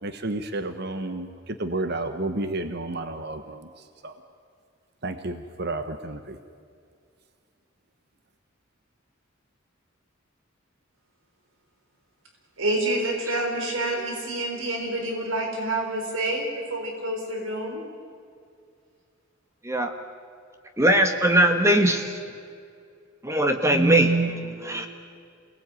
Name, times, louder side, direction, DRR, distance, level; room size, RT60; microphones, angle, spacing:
voice 1, 0.0-3.7 4.0-4.1 5.0-6.4, right 2 dB, 55° right, 9 dB, 1.2 m, -31 dB
voice 2, 12.6-17.8, right 1 dB, 80° right, 2 dB, 4.1 m, -28 dB
voice 3, 20.8-22.1 23.2-24.9, right 1 dB, 15° right, 5 dB, 1.5 m, -20 dB
28.5 x 19.0 x 9.3 m, 2.3 s
head